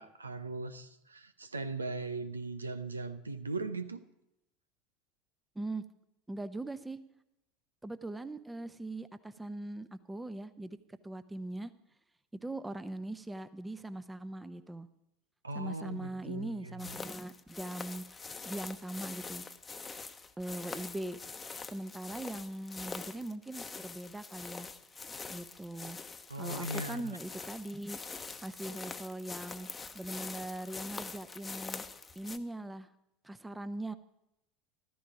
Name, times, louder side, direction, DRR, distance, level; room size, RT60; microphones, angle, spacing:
voice 1, 0.0-4.0 15.4-16.7 26.3-27.2, right 2 dB, 85° right, 12 dB, 0.7 m, -39 dB
voice 2, 6.3-7.0 7.8-10.8 11.0-11.7 12.4-14.9 15.5-19.5 20.4-21.2 21.7-24.7 25.3-26.0 26.4-28.0 28.4-31.8 32.1-32.9 33.2-34.0, right 1 dB, 10° right, 13 dB, 0.9 m, -41 dB
sound 1, 16.8-32.4, left 4 dB, 20° left, 1.0 m, -44 dB
14.5 x 13.5 x 4.9 m, 0.83 s
figure-of-eight pair, 75°, 0 cm